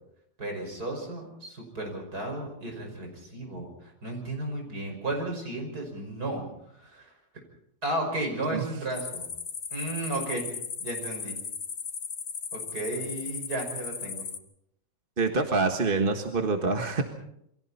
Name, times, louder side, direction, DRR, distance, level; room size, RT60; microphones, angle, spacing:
voice 1, 0.4-6.4 6.8-7.1 7.8-9.3 9.7-10.4 10.8-11.4 12.5-14.2, right 1 dB, 55° right, 3 dB, 6.2 m, -34 dB
sound 1, 8.9-14.4, left 6 dB, 55° left, 1.9 m, -36 dB
voice 2, 15.2-17.0, right 3 dB, 30° right, 4 dB, 1.6 m, -26 dB
28.5 x 23.0 x 4.2 m, 0.74 s
omnidirectional pair, 1.9 m